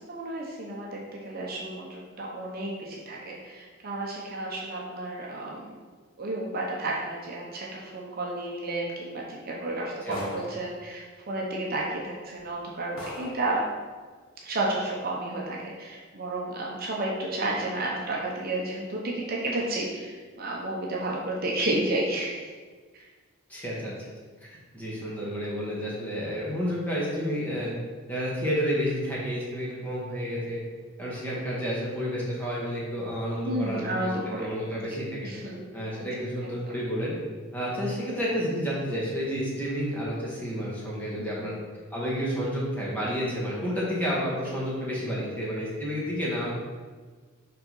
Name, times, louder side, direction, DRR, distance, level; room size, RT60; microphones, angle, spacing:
voice 1, 0.1-5.8 6.2-13.6 14.4-22.5 22.9-23.0 23.8-23.9 27.5-27.7 33.4-34.5 35.2-35.6 41.2-41.5 44.5-44.6, right 2 dB, 45° right, -3 dB, 0.8 m, -32 dB
sound 1, 10.1-10.7 11.7-11.8 12.4-12.5 13.0-13.5, left 1 dB, 75° left, 1.4 m, -40 dB
voice 2, 23.5-23.9 24.4-27.7 28.1-30.6 31.0-34.0 34.4-35.3 35.7-37.1 37.5-41.5 41.9-46.5, equal, 10° left, -6 dB, 1.6 m, -30 dB
5.6 x 3.8 x 5.4 m, 1.5 s
head